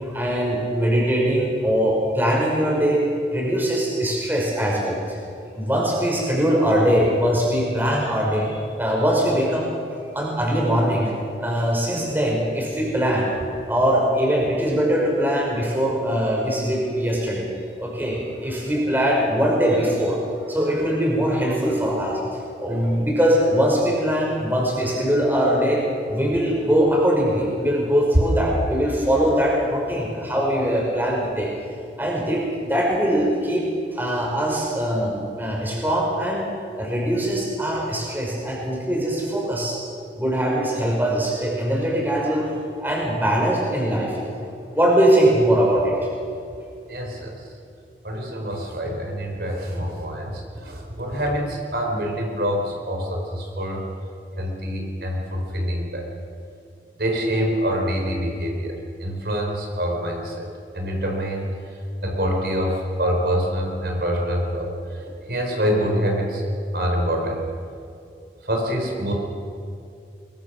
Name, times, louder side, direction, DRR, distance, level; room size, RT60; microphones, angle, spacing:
voice 1, 0.0-3.0 3.3-5.2 5.5-8.5 8.8-9.7 10.0-11.1 11.4-13.3 13.7-17.5 17.8-20.2 20.5-25.8 26.1-31.5 32.0-33.6 33.9-36.4 36.8-39.8 40.2-42.5 42.8-44.2 44.7-45.9, equal, 10° right, -3 dB, 5.4 m, -21 dB
voice 2, 46.9-47.4 48.0-53.8 54.4-56.1 57.0-60.5 60.7-61.5 62.0-66.4 66.7-67.4 68.4-69.1, equal, 65° right, 1 dB, 4.2 m, -26 dB
23.5 x 23.0 x 6.3 m, 2.5 s
head